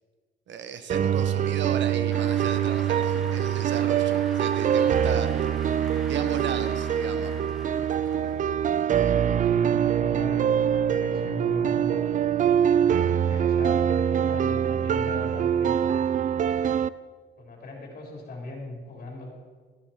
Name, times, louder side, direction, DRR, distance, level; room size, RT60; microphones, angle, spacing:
voice 1, 0.5-5.5 6.0-7.3, right 7 dB, 65° right, 10 dB, 1.1 m, -36 dB
sound 1, 0.9-16.9, right 9 dB, 40° right, 0.4 m, -24 dB
Cheering / Applause, 2.1-9.0, equal, ahead, 2.2 m, -45 dB
voice 2, 8.9-12.0 12.8-15.8 17.4-19.4, left 2 dB, 45° left, -1 dB, 3.9 m, -39 dB
13.5 x 11.0 x 4.5 m, 1.5 s
cardioid pair, 90°, 20 cm